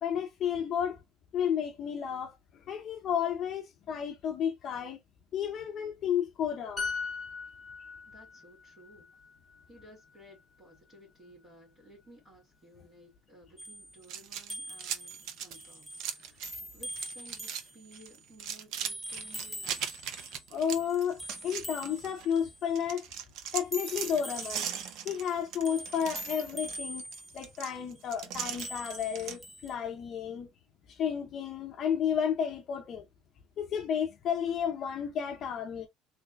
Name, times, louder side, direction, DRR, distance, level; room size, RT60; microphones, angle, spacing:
voice 1, 0.0-1.0 1.3-2.4 2.7-5.0 5.3-6.9 20.5-23.1 23.5-24.7 25.0-27.0 27.3-30.5 30.9-33.0 33.6-35.9, left 8 dB, 35° left, 0.6 m, -32 dB
sound 1, 6.8-10.4 10.7-10.9, left 4 dB, 10° left, 1.1 m, -40 dB
voice 2, 8.1-9.1 9.7-19.8, equal, 30° right, 2.1 m, -56 dB
sound 2, 13.6-18.4 18.9-20.5 20.7-22.7 23.6-28.0 28.6-29.7, equal, 5° right, 0.5 m, -44 dB
sound 3, 14.0-16.6 16.9-17.6 17.9-22.4 22.8-29.4, right 8 dB, 55° right, 0.6 m, -39 dB
3.7 x 3.2 x 2.3 m
cardioid pair, 165°, 0 cm